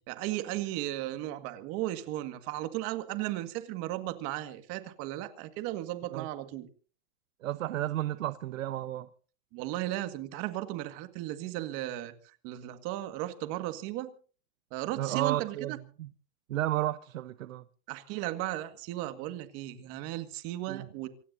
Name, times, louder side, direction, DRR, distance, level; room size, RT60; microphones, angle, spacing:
voice 1, 0.1-6.7 9.5-12.1 12.4-14.1 14.7-15.8 17.9-21.1, right 15 dB, 35° right, 1.9 m, -35 dB
voice 2, 7.4-9.1 15.0-15.7 16.0-16.1 16.5-17.6 20.7-20.9, right 14 dB, 85° right, 1.0 m, -32 dB
27.0 x 17.5 x 2.7 m
supercardioid pair, 155°, 39 cm